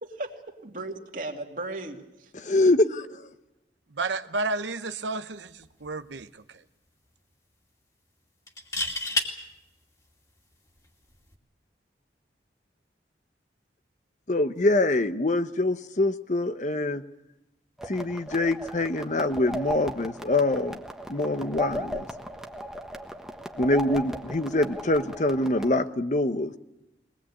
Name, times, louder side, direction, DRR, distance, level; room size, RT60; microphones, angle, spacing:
voice 1, 0.0-2.3, right 2 dB, 50° right, 3 dB, 2.5 m, -36 dB
voice 2, 2.3-3.3 14.3-17.0 17.9-20.8 21.1-22.1 23.6-26.5, left 2 dB, 40° left, 10 dB, 0.9 m, -25 dB
voice 3, 4.0-6.4, right 3 dB, 85° right, 10 dB, 0.9 m, -31 dB
sound 1, 5.6-5.9 6.2-6.3 8.5-9.3 11.1-11.3, left 2 dB, 20° left, 2.5 m, -29 dB
sound 2, 17.8-25.7, equal, 5° right, 1.3 m, -37 dB
22.5 x 19.5 x 8.6 m, 0.92 s
head